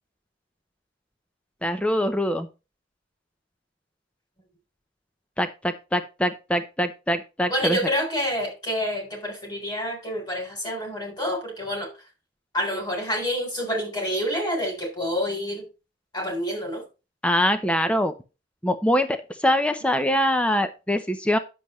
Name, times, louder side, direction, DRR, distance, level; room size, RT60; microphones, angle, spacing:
voice 1, 1.6-2.5 5.4-7.8 17.2-18.1 18.6-21.4, equal, 5° left, 0.7 m, -23 dB
voice 2, 7.5-11.9 12.5-15.7 16.1-16.8, equal, 20° left, 3.7 m, -28 dB
9.8 x 7.7 x 3.1 m
head